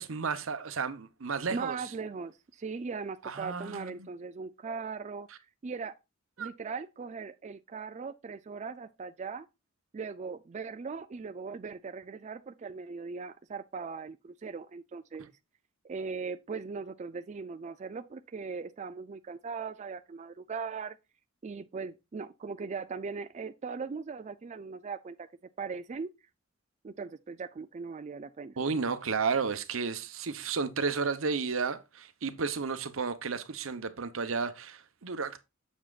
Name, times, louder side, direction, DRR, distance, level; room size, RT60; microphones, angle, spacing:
voice 1, 0.0-1.8 3.2-3.9 6.4-6.5 28.6-35.4, right 5 dB, 80° right, 0.8 m, -32 dB
voice 2, 1.5-5.3 5.6-6.0 6.4-9.5 9.9-15.3 15.8-21.0 21.4-25.3 25.6-26.1 26.8-28.6, right 5 dB, 35° right, 0.4 m, -39 dB
7.2 x 7.1 x 2.4 m
head